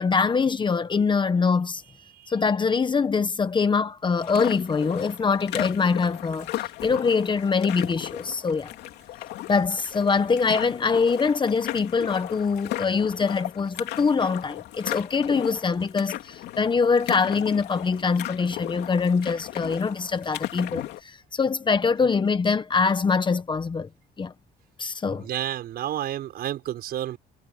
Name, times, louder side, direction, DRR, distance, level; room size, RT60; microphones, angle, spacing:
voice 1, 0.0-1.8 2.3-8.7 9.5-23.9 24.2-24.3 24.8-25.3, left 5 dB, 30° left, 1.2 m, -24 dB
sound 1, 4.2-21.0, left 15 dB, 80° left, 3.2 m, -36 dB
voice 2, 25.0-27.2, right 12 dB, 65° right, 5.8 m, -31 dB
cardioid pair, 110°, 17 cm